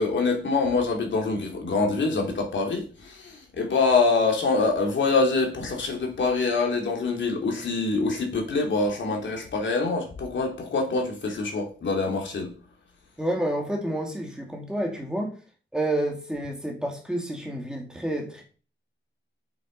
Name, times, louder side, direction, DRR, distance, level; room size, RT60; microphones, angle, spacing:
voice 1, 0.0-12.5, left 3 dB, 70° left, 3.1 m, -25 dB
voice 2, 13.2-15.3 15.7-18.4, right 1 dB, 5° right, 2.2 m, -29 dB
8.0 x 7.8 x 5.3 m
wide cardioid pair, 180°, 20 cm